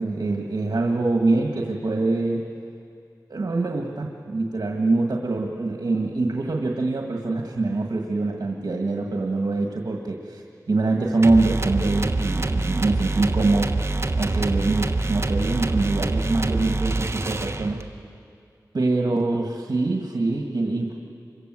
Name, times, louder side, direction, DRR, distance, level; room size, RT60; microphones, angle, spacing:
voice 1, 0.0-2.5 3.3-13.8 14.2-17.8 18.7-20.9, right 3 dB, 75° right, 1 dB, 1.9 m, -24 dB
sound 1, 11.2-18.0, right 2 dB, 40° right, 1.2 m, -25 dB
27.0 x 24.0 x 7.7 m, 2.3 s
wide cardioid pair, 65°, 7 cm